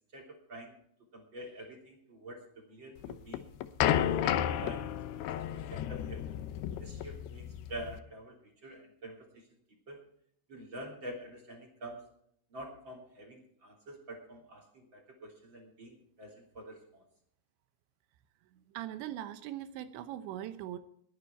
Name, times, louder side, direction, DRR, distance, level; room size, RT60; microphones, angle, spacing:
voice 1, 0.1-0.8 1.1-3.4 4.1-4.9 5.1-5.3 5.5-6.4 6.8-7.4 7.7-9.3 9.9-10.0 10.5-12.0 12.5-17.0, right 1 dB, 30° right, 0 dB, 3.2 m, -47 dB
sound 1, 3.0-8.0, left 10 dB, 75° left, 2.5 m, -32 dB
voice 2, 18.5-20.8, right 12 dB, 80° right, 11 dB, 3.1 m, -41 dB
21.5 x 9.8 x 4.5 m, 0.67 s
omnidirectional pair, 5.4 m